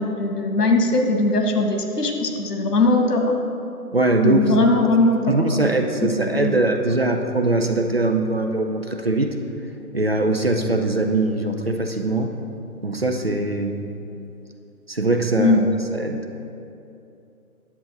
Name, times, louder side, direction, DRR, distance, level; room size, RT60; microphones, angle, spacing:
voice 1, 0.0-3.3 4.2-5.7 6.2-6.5 15.4-15.6, left 2 dB, 85° left, 3 dB, 1.5 m, -20 dB
voice 2, 3.9-4.6 5.3-9.4 9.9-12.3 12.8-13.8 14.9-15.6 15.9-16.2, right 2 dB, 45° right, 5 dB, 0.5 m, -21 dB
10.5 x 7.4 x 4.0 m, 2.7 s
hypercardioid pair, 175°, 46 cm